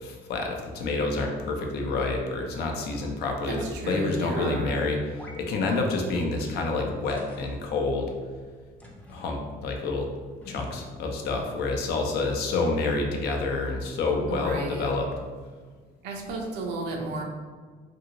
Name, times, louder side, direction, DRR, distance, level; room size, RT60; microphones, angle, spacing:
voice 1, 0.0-5.0 5.4-8.1 9.1-10.1 10.5-15.1, left 3 dB, 75° left, 2 dB, 0.6 m, -28 dB
voice 2, 3.5-4.8 14.3-14.9 16.0-17.2, right 2 dB, 85° right, 1 dB, 0.6 m, -33 dB
sound 1, 5.2-5.4 5.7-5.8 6.4-6.5 7.1-7.6 8.8-9.3 10.4-11.1, left 1 dB, 10° left, 0.5 m, -45 dB
2.7 x 2.7 x 2.8 m, 1.5 s
cardioid pair, 110°, 17 cm